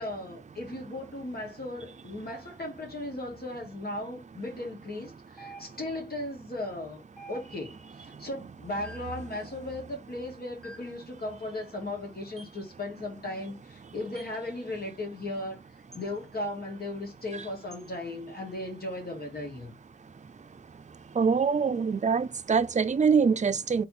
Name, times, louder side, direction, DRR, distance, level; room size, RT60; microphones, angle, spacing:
voice 1, 0.0-7.0 7.3-15.6 15.9-19.7, left 1 dB, 70° left, 2.0 m, -37 dB
sound 1, 5.4-6.1 7.2-7.8 8.8-9.3 10.6-11.1 12.4-12.6 14.2-14.4 15.9-16.1 17.7-17.9, right 2 dB, ahead, 1.0 m, -49 dB
voice 2, 21.2-23.9, right 5 dB, 45° right, 0.4 m, -24 dB
3.9 x 3.0 x 4.2 m
wide cardioid pair, 50°, 16 cm